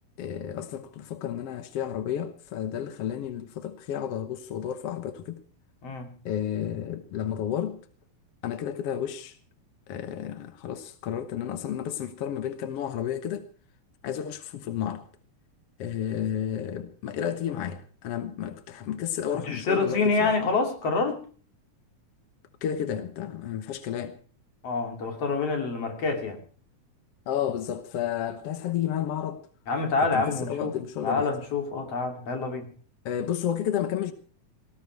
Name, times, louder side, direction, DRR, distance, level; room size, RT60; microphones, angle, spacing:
voice 1, 0.2-5.4 6.2-7.8 8.4-9.4 9.9-13.5 14.0-15.0 15.8-20.3 22.6-24.1 27.3-29.4 30.1-31.3 33.0-34.1, left 9 dB, 65° left, 1.5 m, -31 dB
voice 2, 19.4-21.2 24.6-26.4 29.7-30.7 31.0-32.7, left 4 dB, 45° left, 3.5 m, -27 dB
18.5 x 14.5 x 4.7 m
omnidirectional pair, 4.2 m